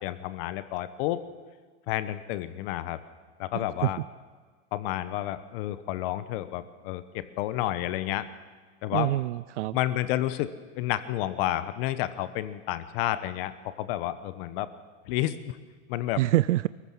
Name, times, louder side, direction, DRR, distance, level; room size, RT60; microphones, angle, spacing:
voice 1, 0.0-1.2 1.9-3.0 3.4-4.0 4.7-8.3 8.8-9.1 9.7-14.7 15.1-15.6 15.9-16.2, left 14 dB, 55° left, 14 dB, 1.2 m, -30 dB
voice 2, 3.5-4.1 8.9-9.8 16.1-16.7, right 16 dB, 80° right, 18 dB, 0.6 m, -26 dB
25.5 x 15.0 x 7.5 m, 1.5 s
hypercardioid pair, 115°, 36 cm